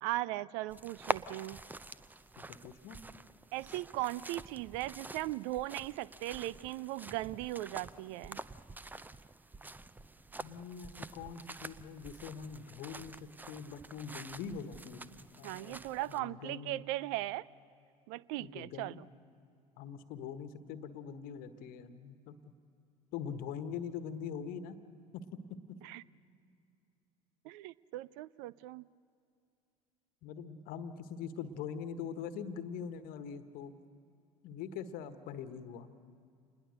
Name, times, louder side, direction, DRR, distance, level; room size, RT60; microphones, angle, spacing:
voice 1, 0.0-1.6 3.5-8.4 15.4-17.5 18.1-19.0 25.8-26.0 27.4-28.8, right 16 dB, 55° right, 22 dB, 0.5 m, -38 dB
sound 1, 0.7-16.2, right 2 dB, 10° right, 0.6 m, -46 dB
voice 2, 2.4-3.0 10.4-15.1 15.4-15.8 16.1-16.8 18.4-19.0 19.8-22.4 23.1-24.8 25.1-25.8 30.2-33.7 34.4-35.9, left 7 dB, 50° left, 11 dB, 1.4 m, -43 dB
27.5 x 21.0 x 6.5 m, 2.4 s
figure-of-eight pair, 65°, 19 cm